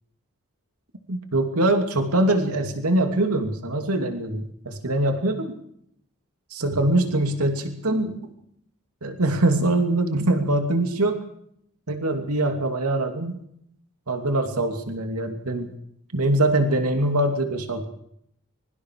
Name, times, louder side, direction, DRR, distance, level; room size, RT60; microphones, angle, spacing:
voice 1, 1.1-5.5 6.6-8.2 9.0-11.2 11.9-13.4 14.1-15.7 16.1-17.8, right 1 dB, 85° right, 5 dB, 2.8 m, -23 dB
25.0 x 23.5 x 4.9 m, 0.72 s
head